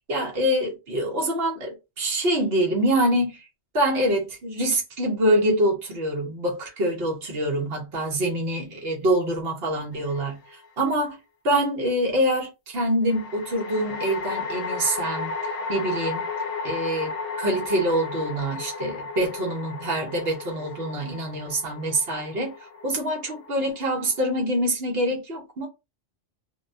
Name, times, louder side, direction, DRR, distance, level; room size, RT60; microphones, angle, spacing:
voice 1, 0.1-3.5 3.7-10.4 10.8-11.2 11.4-15.3 15.7-16.2 16.6-17.1 17.4-22.5 22.8-25.7, right 1 dB, 55° right, 1.2 m, -25 dB
sound 1, 10.0-10.7 13.1-24.4, left 4 dB, 60° left, 0.7 m, -34 dB
3.4 x 2.2 x 2.6 m
omnidirectional pair, 1.3 m